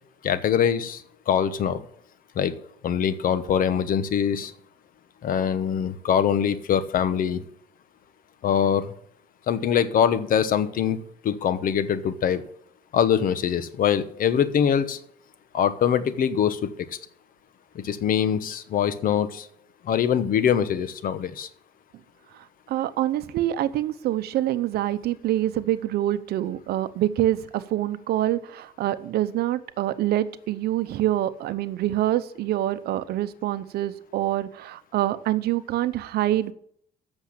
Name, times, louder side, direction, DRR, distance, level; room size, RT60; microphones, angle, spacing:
voice 1, 0.2-1.8 2.3-2.5 2.8-4.5 5.2-7.4 8.4-8.9 9.5-11.0 11.2-12.4 12.9-15.0 15.5-16.7 17.7-19.5 19.8-21.5, left 8 dB, 55° left, 14 dB, 1.0 m, -23 dB
voice 2, 22.7-36.5, right 13 dB, 70° right, 14 dB, 0.8 m, -26 dB
8.1 x 6.9 x 8.5 m, 0.65 s
cardioid pair, 110°, 17 cm